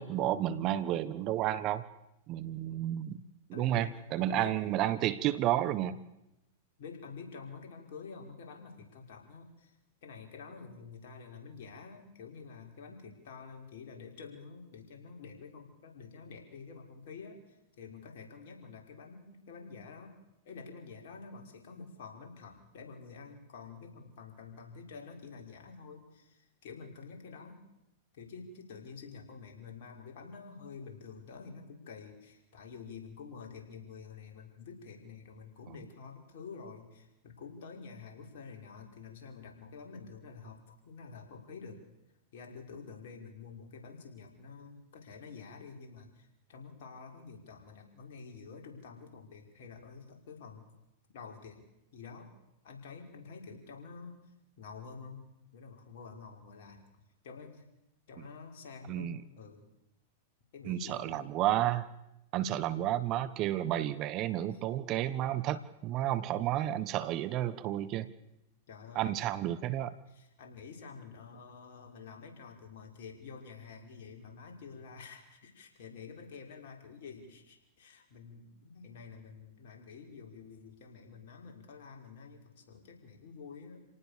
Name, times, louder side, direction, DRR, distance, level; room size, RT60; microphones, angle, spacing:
voice 1, 0.0-1.8 2.3-3.2 3.5-6.0 58.9-59.2 60.6-61.9 62.3-68.1 68.9-69.9, right 12 dB, 40° right, 15 dB, 1.3 m, -31 dB
voice 2, 3.5-4.0 4.3-5.0 6.8-9.8 10.0-20.2 20.4-27.7 28.1-41.8 42.3-50.6 51.1-51.7 51.9-52.3 52.6-55.2 55.5-56.8 57.2-57.6 58.1-59.6 60.5-61.3 64.5-64.6 65.1-65.3 68.7-69.3 70.1-83.9, left 5 dB, 65° left, 2 dB, 5.6 m, -48 dB
28.5 x 18.5 x 6.8 m, 0.90 s
hypercardioid pair, 105°, 0 cm